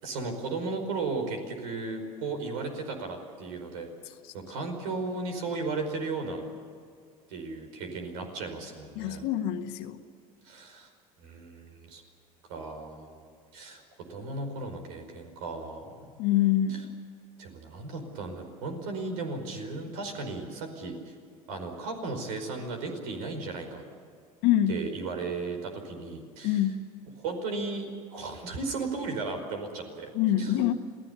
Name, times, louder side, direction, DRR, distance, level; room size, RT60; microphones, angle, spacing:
voice 1, 0.0-3.9 4.3-6.4 7.3-9.2 10.4-10.9 11.2-12.0 12.5-13.2 13.5-13.8 14.1-16.1 16.7-16.8 17.4-21.1 21.5-23.8 24.7-26.6 27.2-30.1 30.4-30.5, right 3 dB, 70° right, 5 dB, 5.0 m, -35 dB
voice 2, 8.9-10.0 16.2-16.9 24.4-24.8 26.4-26.8 30.1-30.7, left 11 dB, 65° left, 8 dB, 1.6 m, -25 dB
28.0 x 17.5 x 6.9 m, 2.2 s
hypercardioid pair, 70°, 19 cm